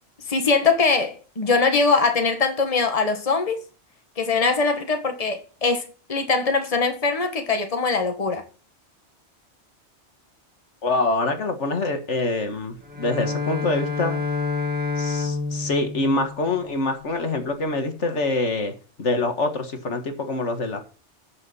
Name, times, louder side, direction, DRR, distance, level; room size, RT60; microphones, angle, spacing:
voice 1, 0.3-3.6 4.2-5.8 6.1-8.4, left 4 dB, 30° left, 1.5 m, -22 dB
voice 2, 10.8-14.2 15.0-18.7 19.0-20.8, left 2 dB, 75° left, 1.9 m, -25 dB
Bowed string instrument, 12.8-17.0, left 4 dB, 10° right, 2.0 m, -28 dB
8.2 x 6.9 x 7.1 m
omnidirectional pair, 1.2 m